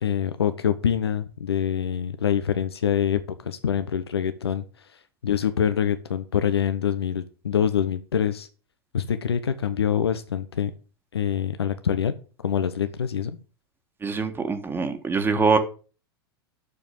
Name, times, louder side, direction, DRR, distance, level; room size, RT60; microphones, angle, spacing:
voice 1, 0.0-4.6 4.9-8.5 8.9-10.7 11.1-12.1 12.4-13.4, left 8 dB, 75° left, 0.8 m, -25 dB
voice 2, 14.0-15.6, right 4 dB, 15° right, 1.5 m, -23 dB
9.0 x 6.9 x 6.7 m
figure-of-eight pair, 95°, 13 cm